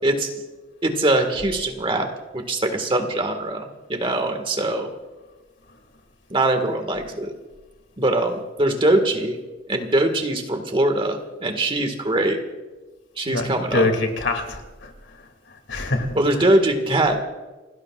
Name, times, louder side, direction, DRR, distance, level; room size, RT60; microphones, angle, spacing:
voice 1, 0.8-2.1 2.3-4.9 6.3-7.3 8.0-9.4 9.7-12.4 13.2-13.9 16.2-17.2, right 1 dB, 30° right, 5 dB, 1.8 m, -22 dB
voice 2, 13.3-15.2 15.5-16.1, left 2 dB, 80° left, 5 dB, 2.6 m, -25 dB
29.5 x 17.0 x 2.5 m, 1.2 s
head